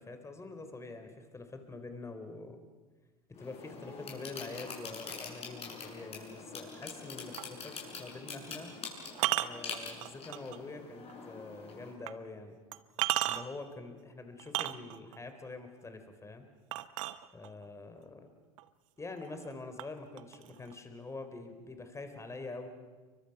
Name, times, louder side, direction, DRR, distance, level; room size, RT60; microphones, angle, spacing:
voice 1, 0.0-2.6 3.4-8.7 9.4-12.6 13.3-16.5 17.3-18.3 19.0-22.7, left 3 dB, 15° left, 7 dB, 3.7 m, -45 dB
sound 1, 3.3-11.9, left 4 dB, 35° left, 7.6 m, -45 dB
sound 2, 7.4-7.6 9.1-10.6 11.1-11.2 12.1-12.2 12.7-13.7 14.4-15.2 16.7-17.7 18.6-18.7 19.1-19.5 19.8-20.7, right 16 dB, 65° right, 1.0 m, -34 dB
29.5 x 24.0 x 5.9 m, 1.4 s
hypercardioid pair, 80°, 18 cm